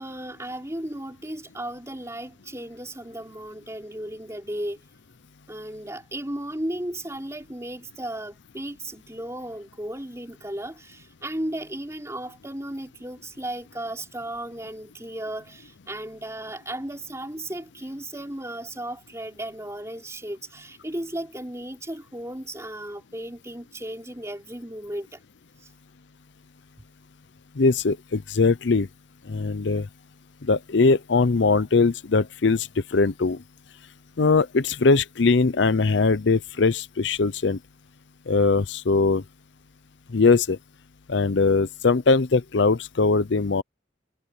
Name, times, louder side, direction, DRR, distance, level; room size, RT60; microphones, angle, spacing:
voice 1, 0.0-4.8 5.5-25.2 25.6-25.7, right 1 dB, 15° right, 4.1 m, -35 dB
voice 2, 27.6-28.9 29.3-29.9 30.4-33.4 34.2-37.6 38.3-39.2 40.1-40.6 41.1-43.6, left 4 dB, 65° left, 0.6 m, -21 dB
head